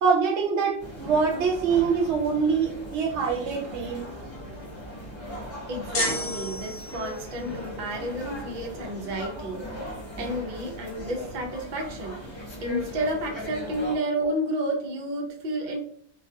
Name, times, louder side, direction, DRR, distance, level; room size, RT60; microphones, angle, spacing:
voice 1, 0.0-4.1, right 5 dB, 80° right, 2 dB, 0.9 m, -24 dB
sound 1, 0.8-14.0, equal, 30° left, 0.8 m, -39 dB
voice 2, 5.7-9.6 10.2-12.2 12.6-15.8, right 1 dB, 50° right, 0 dB, 0.6 m, -31 dB
sound 2, 5.9-7.3, left 3 dB, 55° left, 0.5 m, -31 dB
2.3 x 2.3 x 2.6 m, 0.63 s
omnidirectional pair, 1.2 m